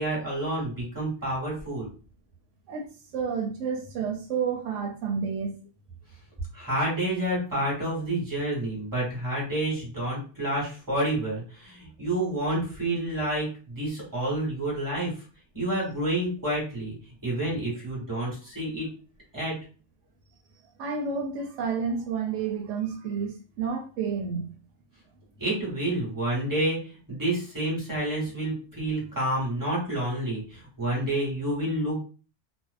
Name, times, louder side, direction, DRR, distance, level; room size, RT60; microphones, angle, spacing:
voice 1, 0.0-1.9 6.5-15.1 15.5-16.9 17.2-18.9 19.3-19.5 25.4-26.8 27.1-32.0, right 1 dB, 15° right, 1.3 m, -29 dB
voice 2, 2.7-5.6 20.8-24.5, right 6 dB, 90° right, 0.9 m, -30 dB
2.6 x 2.0 x 2.4 m
omnidirectional pair, 1.2 m